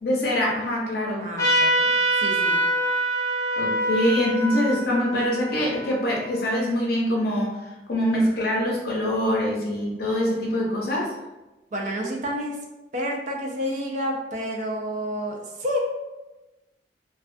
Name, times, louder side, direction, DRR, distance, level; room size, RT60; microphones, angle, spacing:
voice 1, 0.0-1.3 3.6-7.6 7.9-11.1, equal, 60° left, -2 dB, 0.6 m, -24 dB
voice 2, 1.2-2.6 11.7-12.6 12.9-15.8, equal, 45° right, 0 dB, 0.4 m, -29 dB
Trumpet, 1.4-6.5, right 1 dB, 20° left, 0.7 m, -25 dB
2.3 x 2.2 x 2.5 m, 1.0 s
head